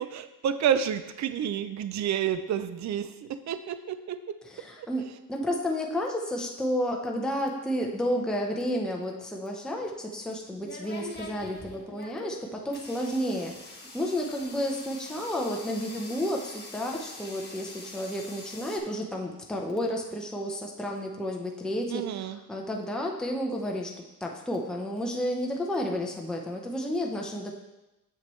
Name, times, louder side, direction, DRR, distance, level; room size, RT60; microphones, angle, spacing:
voice 1, 0.0-4.4 4.8-4.9 21.9-22.4, right 9 dB, 45° right, 12 dB, 0.5 m, -30 dB
voice 2, 4.4-27.5, equal, ahead, 0 dB, 0.8 m, -31 dB
sound 1, 9.8-18.8, left 2 dB, 25° left, 1.4 m, -44 dB
7.3 x 7.1 x 3.1 m, 1.0 s
cardioid pair, 110°, 38 cm